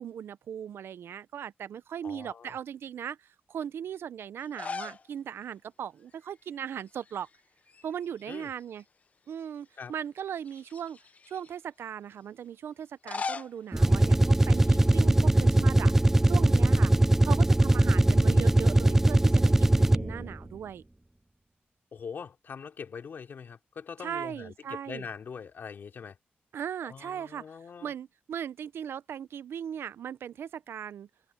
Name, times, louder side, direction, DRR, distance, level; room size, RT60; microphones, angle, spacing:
voice 1, 0.0-3.2 3.5-7.3 7.8-8.8 9.3-11.0 11.3-15.9 16.2-16.9 17.2-20.8 24.0-25.1 26.5-27.4 27.8-31.1, right 8 dB, 80° right, 0.6 m, -38 dB
voice 2, 2.0-2.6 8.3-8.5 9.8-9.9 21.9-26.2 26.8-27.9, left 6 dB, 55° left, 3.2 m, -42 dB
sound 1, 4.4-5.1 5.4-5.5 6.9-7.4 7.7-8.8 9.4-9.5 10.4-11.5 12.8-15.0, left 4 dB, 35° left, 0.6 m, -40 dB
sound 2, 13.7-20.3, right 1 dB, 10° right, 0.3 m, -21 dB
open air
wide cardioid pair, 145°, 4 cm